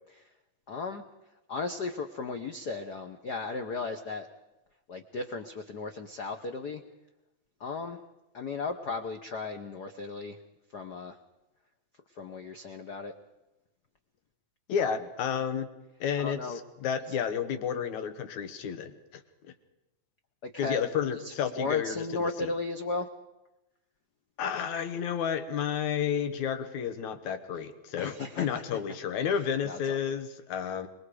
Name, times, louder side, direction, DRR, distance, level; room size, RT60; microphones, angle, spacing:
voice 1, 0.7-1.0 1.5-4.3 4.9-6.8 7.6-8.0 8.3-10.4 10.7-11.2 12.2-13.1 14.8-14.9 16.2-16.6 20.4-20.8 21.1-23.1 28.0-28.8 29.3-29.4 29.6-30.0, left 3 dB, 90° left, 7 dB, 0.9 m, -35 dB
voice 2, 14.7-15.7 16.0-19.2 20.6-22.5 24.4-30.9, left 8 dB, 75° left, 10 dB, 2.6 m, -31 dB
25.5 x 21.0 x 4.9 m, 0.97 s
omnidirectional pair, 3.5 m